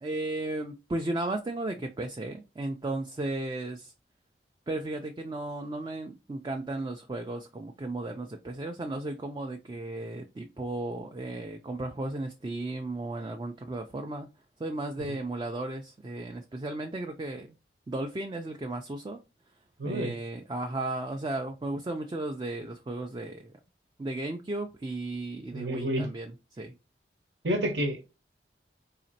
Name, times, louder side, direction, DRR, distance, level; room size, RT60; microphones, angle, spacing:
voice 1, 0.0-3.9 4.7-14.3 14.6-17.6 17.9-19.2 19.8-23.5 24.0-26.7, right 2 dB, 25° right, 0.3 m, -35 dB
voice 2, 19.8-20.1 25.5-26.1 27.4-28.0, equal, 80° right, 1.1 m, -29 dB
4.1 x 2.8 x 2.7 m
head